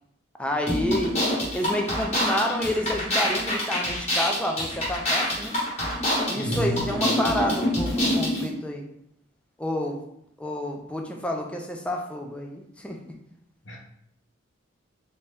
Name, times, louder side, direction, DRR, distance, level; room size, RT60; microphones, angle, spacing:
voice 1, 0.4-1.2 1.5-5.6 6.3-8.9 9.6-10.0 10.4-13.1, left 1 dB, 5° left, 2 dB, 0.4 m, -29 dB
sound 1, 0.7-8.5, left 1 dB, 35° left, 1.3 m, -26 dB
voice 2, 6.3-6.9 13.6-13.8, right 3 dB, 65° left, -1 dB, 0.9 m, -29 dB
3.4 x 2.7 x 3.3 m, 0.75 s
head